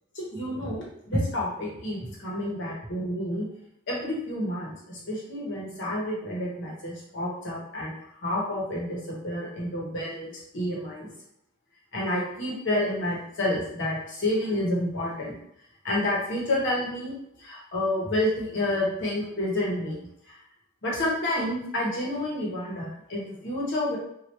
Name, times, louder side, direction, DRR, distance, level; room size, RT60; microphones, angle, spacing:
voice 1, 0.1-3.4 3.9-7.9 8.2-11.1 11.9-15.3 15.8-17.1 17.4-20.4 20.8-24.0, left 1 dB, 60° left, -4 dB, 1.1 m, -29 dB
3.2 x 2.6 x 2.9 m, 0.74 s
head